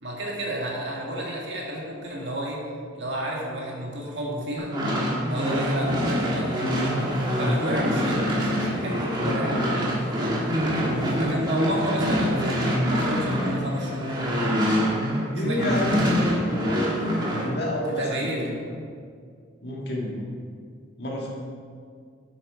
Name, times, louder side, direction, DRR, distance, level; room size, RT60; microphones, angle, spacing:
voice 1, 0.0-2.6 3.0-4.7 5.2-10.6 11.1-14.6 15.3-16.0 17.8-18.5, right 1 dB, 60° right, -2 dB, 1.8 m, -32 dB
sound 1, 4.6-15.2 15.6-17.5, equal, 20° right, 1.5 m, -25 dB
voice 2, 15.3-18.6 19.6-20.3 21.0-21.3, left 1 dB, 55° left, -3 dB, 1.9 m, -29 dB
8.3 x 6.7 x 5.0 m, 2.2 s
head